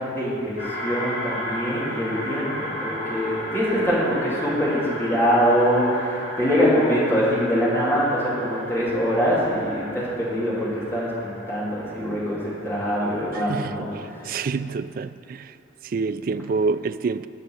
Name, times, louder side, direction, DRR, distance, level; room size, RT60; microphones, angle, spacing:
voice 1, 0.0-13.9 14.2-14.4, equal, 15° left, 2.9 m, -23 dB
sound 1, 0.6-13.3, equal, 45° left, 3.4 m, -34 dB
voice 2, 13.3-13.9 14.2-15.5 15.8-17.3, right 4 dB, 45° right, 0.3 m, -27 dB
10.5 x 6.5 x 8.6 m
head